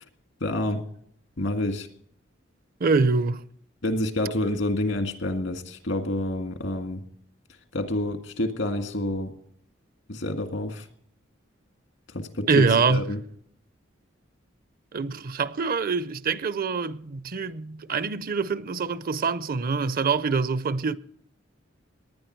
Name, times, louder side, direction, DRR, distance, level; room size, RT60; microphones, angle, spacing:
voice 1, 0.4-0.8 1.4-1.9 3.8-7.0 7.7-9.3 10.1-10.9 12.1-13.2, left 1 dB, 85° left, 1.9 m, -28 dB
voice 2, 2.8-3.4 12.5-13.1 14.9-21.0, right 4 dB, 50° right, 0.6 m, -25 dB
19.0 x 10.0 x 4.5 m
head